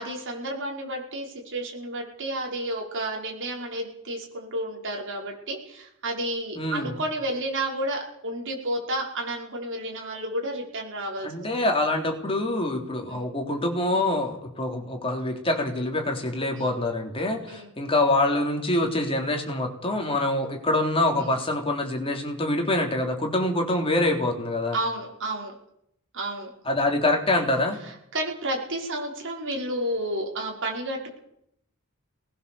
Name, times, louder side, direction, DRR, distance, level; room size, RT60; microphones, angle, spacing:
voice 1, 0.0-11.3 13.1-13.3 16.5-16.8 17.5-17.7 21.1-21.4 24.7-25.5 26.1-26.5 27.8-31.1, right 1 dB, 60° right, 0 dB, 5.4 m, -31 dB
voice 2, 6.6-6.9 11.2-24.8 26.7-27.8, left 2 dB, 25° left, 2 dB, 3.6 m, -25 dB
21.5 x 19.5 x 7.1 m, 0.75 s
head